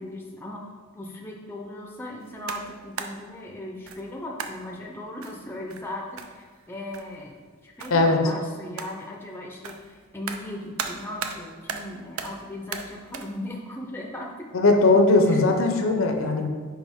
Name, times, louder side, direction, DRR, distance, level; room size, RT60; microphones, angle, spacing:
voice 1, 0.0-14.5 15.3-15.5, left 1 dB, 10° left, 0 dB, 0.6 m, -38 dB
sound 1, 2.2-3.3 3.9-4.1 4.4-4.7 5.2-6.7 6.9-7.2 7.8-8.1 8.8-9.1 9.6-11.4 11.7-12.4 12.7-13.3, right 6 dB, 70° right, 0.5 m, -36 dB
voice 2, 14.5-16.5, left 2 dB, 65° left, 4 dB, 0.7 m, -19 dB
6.1 x 4.7 x 3.6 m, 1.5 s
head